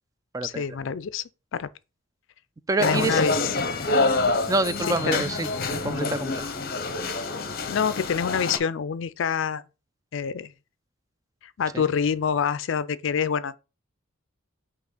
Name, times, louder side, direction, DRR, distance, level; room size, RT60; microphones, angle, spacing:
voice 1, 0.4-1.2 1.5-1.7 2.8-3.6 4.9-5.2 7.7-9.6 10.1-10.5 11.6-13.6, left 7 dB, 65° left, 0.4 m, -26 dB
voice 2, 2.7-3.2 4.5-6.4 11.7-11.8, right 2 dB, 15° right, 0.3 m, -27 dB
sound 1, 2.8-8.6, left 3 dB, 50° left, 0.8 m, -26 dB
5.9 x 3.0 x 5.7 m
head